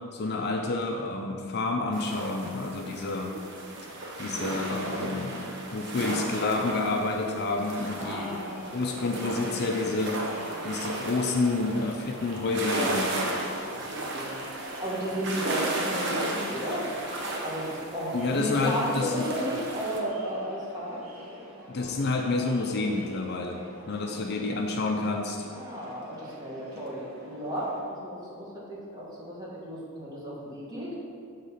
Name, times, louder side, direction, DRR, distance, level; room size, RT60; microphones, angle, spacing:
voice 1, 0.1-3.3 4.2-5.3 5.7-8.3 8.7-10.2 10.6-13.1 18.1-19.2 21.7-25.5, left 3 dB, 50° left, 2 dB, 0.5 m, -29 dB
sound 1, 1.9-20.0, right 2 dB, 55° right, 0.8 m, -35 dB
Crowd, 7.9-27.8, equal, 80° right, 1.2 m, -45 dB
voice 2, 8.0-9.2 13.7-14.5 14.8-16.9 17.4-21.0 25.5-30.9, equal, 20° right, -7 dB, 1.5 m, -34 dB
6.6 x 3.7 x 5.5 m, 2.4 s
head